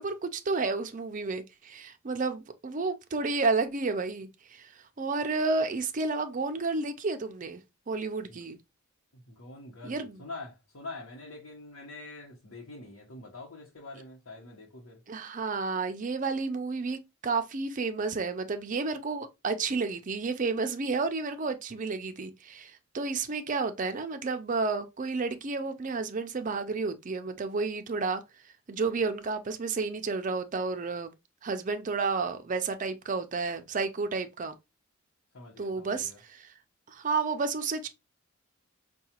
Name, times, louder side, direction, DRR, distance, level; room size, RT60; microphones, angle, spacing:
voice 1, 0.0-4.7 5.0-7.6 7.9-8.6 9.8-10.2 15.1-28.2 28.7-31.1 31.4-34.5 35.6-36.5 36.9-37.9, right 4 dB, 40° right, 0.5 m, -31 dB
voice 2, 9.1-15.0 35.3-36.2, left 2 dB, 90° left, 0.9 m, -45 dB
4.7 x 2.3 x 2.8 m
head